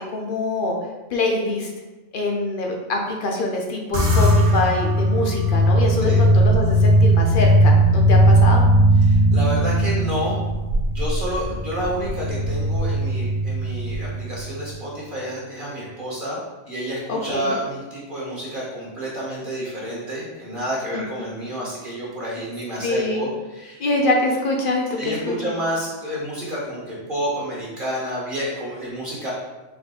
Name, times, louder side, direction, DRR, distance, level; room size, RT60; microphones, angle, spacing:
voice 1, 0.1-0.8 1.1-1.7 2.1-8.6 17.1-17.5 20.9-21.0 22.8-23.2 23.8-25.1 25.4-25.5, left 2 dB, 50° left, 1 dB, 0.7 m, -24 dB
sound 1, 3.9-14.5, right 1 dB, 65° right, 1.3 m, -18 dB
voice 2, 9.0-10.4 10.9-16.4 16.7-23.8 25.0-29.3, equal, 40° right, -6 dB, 1.2 m, -29 dB
4.7 x 2.6 x 3.7 m, 1.1 s
omnidirectional pair, 1.4 m